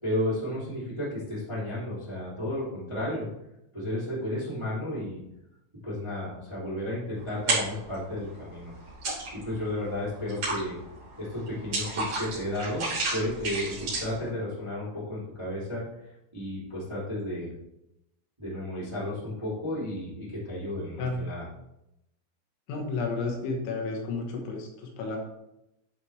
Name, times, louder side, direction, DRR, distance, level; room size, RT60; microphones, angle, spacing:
voice 1, 0.0-3.3 3.7-5.2 5.8-8.7 9.3-10.7 11.2-15.8 16.3-17.5 18.4-21.4, left 1 dB, 10° right, -9 dB, 1.2 m, -33 dB
sound 1, 7.3-8.0 8.4-9.6 10.0-14.3, right 2 dB, 35° right, 2.9 m, -31 dB
voice 2, 22.7-25.2, left 3 dB, 75° left, 1 dB, 3.3 m, -32 dB
11.5 x 4.1 x 3.2 m, 0.87 s
omnidirectional pair, 5.8 m